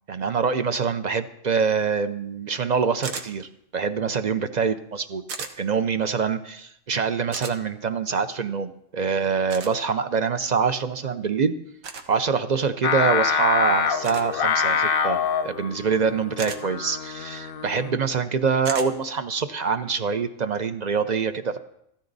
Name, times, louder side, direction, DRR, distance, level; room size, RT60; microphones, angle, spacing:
voice 1, 0.1-5.2 5.6-11.5 12.1-21.6, right 5 dB, 50° right, 11 dB, 0.5 m, -25 dB
sound 1, 3.0-3.3 5.3-5.5 7.3-7.5 9.5-9.7 11.8-12.1 14.0-14.3 16.4-16.6 18.6-18.9, right 5 dB, 85° right, 1.6 m, -34 dB
Singing, 12.8-18.1, left 6 dB, 55° left, 0.7 m, -25 dB
14.5 x 13.0 x 4.0 m, 0.77 s
omnidirectional pair, 1.4 m